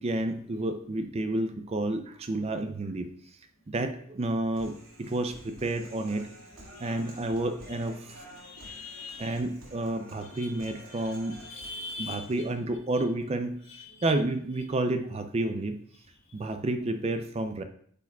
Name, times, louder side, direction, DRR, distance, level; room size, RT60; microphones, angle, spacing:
voice 1, 0.0-3.1 3.7-6.2 6.8-8.2 9.2-11.4 12.0-13.6 14.0-15.8 16.3-17.6, right 2 dB, 30° right, 8 dB, 0.4 m, -30 dB
Human voice, 4.5-12.5, right 1 dB, 80° right, 2.4 m, -50 dB
voice 2, 8.4-9.3 10.3-11.0 11.3-12.2 13.7-14.1, left 3 dB, 60° left, -1 dB, 1.6 m, -42 dB
9.8 x 4.7 x 2.3 m, 0.62 s
head